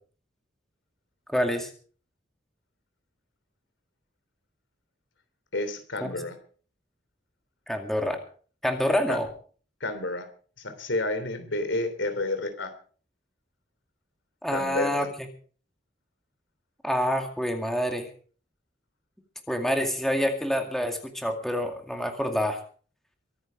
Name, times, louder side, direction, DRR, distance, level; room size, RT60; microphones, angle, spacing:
voice 1, 1.3-1.7 6.0-6.2 7.7-8.2 8.6-9.3 14.4-15.1 16.8-18.1 19.5-22.6, equal, ahead, 4 dB, 2.2 m, -27 dB
voice 2, 5.5-6.4 9.1-9.2 9.8-10.3 10.6-12.7 14.5-15.1, left 2 dB, 85° left, 9 dB, 3.2 m, -30 dB
23.5 x 9.7 x 4.7 m, 0.43 s
head